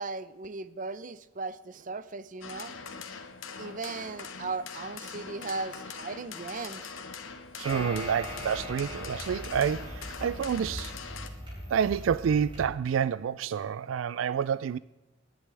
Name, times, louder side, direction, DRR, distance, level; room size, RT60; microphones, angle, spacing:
voice 1, 0.0-2.7 3.6-6.9 13.5-13.6, right 3 dB, 40° right, 0.6 m, -37 dB
sound 1, 2.4-11.3, left 5 dB, 85° left, 1.3 m, -42 dB
sound 2, 7.6-12.7, left 1 dB, 25° right, 5.6 m, -40 dB
voice 2, 7.6-10.9 11.7-14.8, right 7 dB, 75° right, 0.3 m, -28 dB
19.5 x 10.5 x 3.4 m
head